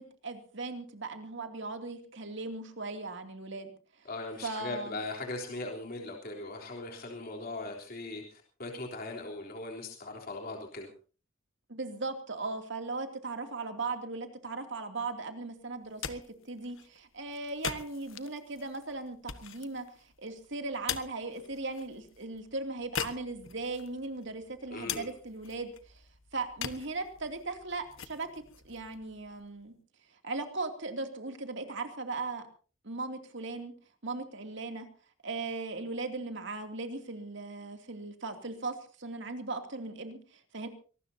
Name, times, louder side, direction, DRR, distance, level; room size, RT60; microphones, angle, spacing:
voice 1, 0.0-3.7 4.4-5.0 11.7-26.0 26.3-29.7 30.2-32.5 32.8-33.7 34.0-34.9 35.2-40.7, right 3 dB, 60° right, 6 dB, 2.7 m, -38 dB
voice 2, 4.1-10.9 24.7-25.1, left 2 dB, 45° left, 1 dB, 3.6 m, -39 dB
sound 1, 15.7-29.7, left 8 dB, 70° left, 1.4 m, -43 dB
24.0 x 19.5 x 2.8 m, 0.38 s
head